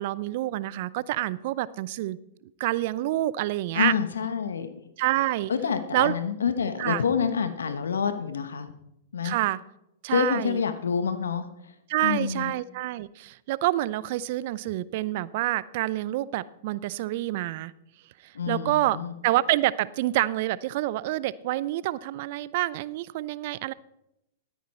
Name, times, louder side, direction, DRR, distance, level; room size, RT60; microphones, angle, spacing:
voice 1, 0.0-2.2 2.6-3.9 5.0-5.5 5.9-6.1 6.8-7.0 9.2-9.6 10.0-10.6 11.9-17.7 18.5-19.0 19.2-23.7, right 16 dB, 55° right, 20 dB, 0.5 m, -27 dB
voice 2, 3.7-4.7 5.5-8.7 9.1-9.4 10.1-11.5 12.0-12.5 18.3-19.1, left 6 dB, 85° left, 10 dB, 1.1 m, -27 dB
13.5 x 9.4 x 4.3 m, 0.84 s
hypercardioid pair, 115°, 0 cm